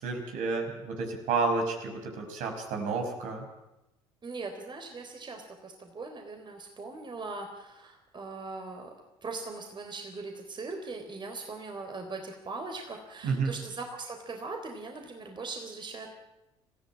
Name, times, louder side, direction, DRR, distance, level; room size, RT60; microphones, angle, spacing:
voice 1, 0.0-3.4 13.2-13.5, right 4 dB, 60° right, 3 dB, 5.6 m, -30 dB
voice 2, 4.2-8.9 9.2-16.1, right 3 dB, 30° right, 4 dB, 3.8 m, -40 dB
25.5 x 15.5 x 8.9 m, 0.95 s
hypercardioid pair, 60°, 15 cm